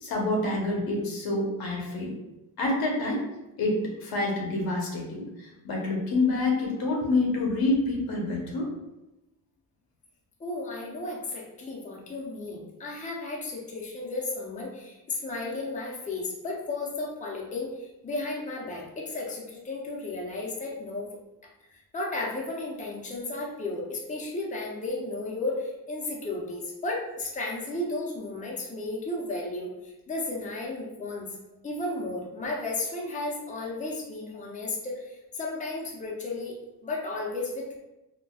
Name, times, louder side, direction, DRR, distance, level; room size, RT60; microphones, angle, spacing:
voice 1, 0.0-2.1 2.6-3.2 3.6-8.7, left 2 dB, 75° left, -1 dB, 1.0 m, -27 dB
voice 2, 10.4-21.1 21.7-31.3 31.6-36.5 36.8-37.8, left 2 dB, 20° left, -2 dB, 0.6 m, -34 dB
3.9 x 2.2 x 2.3 m, 0.96 s
cardioid pair, 110°, 36 cm